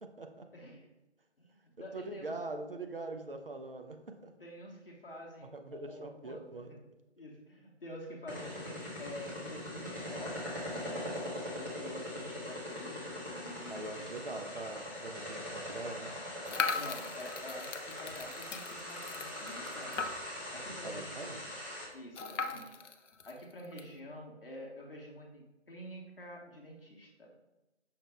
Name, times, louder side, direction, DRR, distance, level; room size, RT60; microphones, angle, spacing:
voice 1, 0.0-0.5 1.8-4.0 4.2-4.3 5.5-6.7 13.7-16.1 20.4-20.5 20.8-21.5, right 2 dB, 55° right, 5 dB, 0.5 m, -43 dB
voice 2, 0.5-0.9 1.4-2.4 4.4-6.8 7.2-14.1 16.7-21.4 21.9-22.7 23.2-27.3, equal, 50° left, -2 dB, 0.8 m, -48 dB
sound 1, 8.3-21.8, left 1 dB, 15° right, 0.8 m, -42 dB
sound 2, 16.4-20.5 20.9-21.0 21.2-21.3 22.1-23.9, left 5 dB, 85° left, 0.5 m, -39 dB
5.7 x 2.1 x 3.3 m, 0.98 s
figure-of-eight pair, 155°, 35 cm